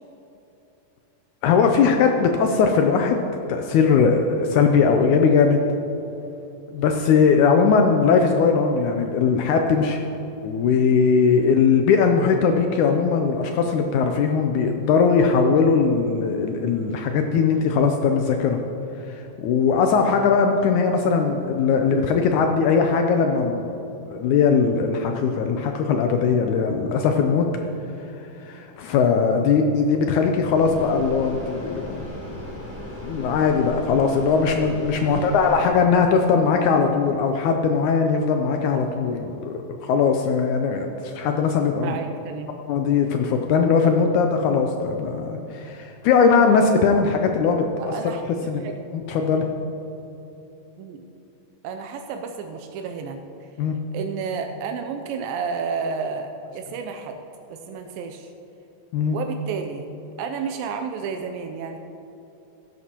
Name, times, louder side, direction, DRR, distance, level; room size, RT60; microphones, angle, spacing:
voice 1, 1.4-5.6 6.7-10.0 10.4-18.6 19.1-23.8 24.1-27.5 28.4-32.2 33.0-42.0 42.7-48.1 48.5-48.6 49.1-49.5 53.6-53.8 58.9-59.2, left 5 dB, 80° left, 4 dB, 1.8 m, -20 dB
sound 1, 30.5-35.7, left 1 dB, 65° left, 4.4 m, -36 dB
voice 2, 41.8-42.5 47.7-49.2 50.8-51.0 51.6-53.2 53.9-57.2 57.5-58.3 59.1-59.9 60.2-61.8, right 5 dB, 85° right, 5 dB, 2.4 m, -31 dB
14.5 x 11.0 x 2.9 m, 3.0 s
omnidirectional pair, 4.0 m